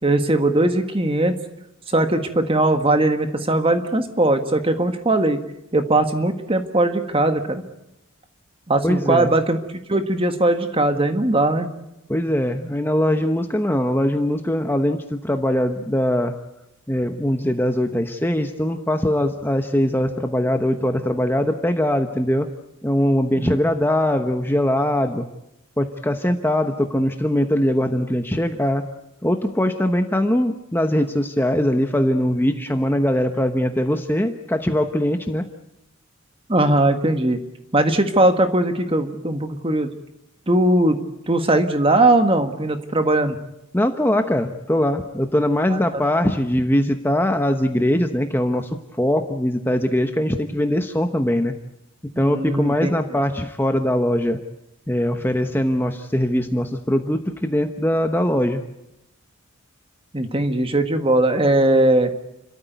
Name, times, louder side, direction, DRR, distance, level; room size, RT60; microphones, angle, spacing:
voice 1, 0.0-1.4 1.9-5.4 5.7-7.6 8.7-9.6 9.9-11.7 23.4-23.6 36.5-37.4 37.7-39.9 40.5-41.0 41.3-43.4 45.7-45.8 52.1-52.9 60.1-62.1, right 1 dB, 25° right, 7 dB, 1.6 m, -19 dB
voice 2, 8.8-9.3 12.1-16.3 16.9-22.5 22.8-25.2 25.8-28.8 29.2-35.4 43.7-51.5 52.2-54.4 54.9-58.6, left 1 dB, 10° left, 6 dB, 1.0 m, -21 dB
30.0 x 13.5 x 9.4 m, 0.89 s
head